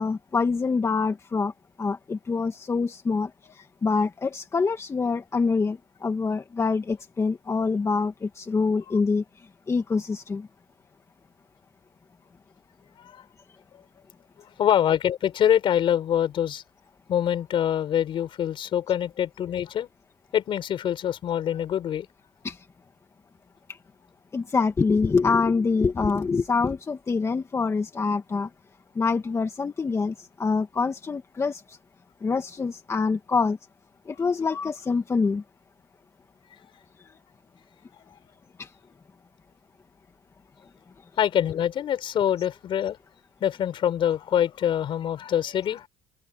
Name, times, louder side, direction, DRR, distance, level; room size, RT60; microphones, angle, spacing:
voice 1, 0.0-10.5 22.4-22.7 23.7-23.8 24.3-28.5 28.9-31.8 32.2-33.6 34.0-35.4 38.6-38.7, left 4 dB, 25° left, 1.5 m, -25 dB
voice 2, 14.6-16.6 17.1-19.9 20.3-22.1 34.2-34.3 41.2-43.0 43.4-45.9, left 10 dB, 55° left, 5.4 m, -25 dB
open air
supercardioid pair, 90°, 10 cm